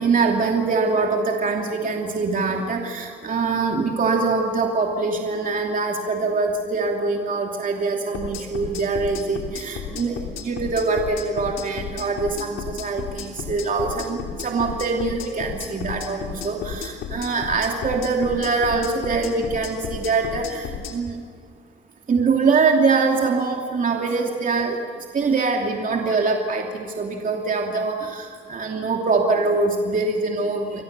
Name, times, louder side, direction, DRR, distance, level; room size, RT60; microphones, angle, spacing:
voice 1, 0.0-21.1 22.1-24.8 25.1-30.8, right 4 dB, 40° right, 1 dB, 2.9 m, -23 dB
sound 1, 8.1-20.9, left 7 dB, 85° left, 3.3 m, -33 dB
30.0 x 22.5 x 6.9 m, 2.1 s
cardioid pair, 90°, 20 cm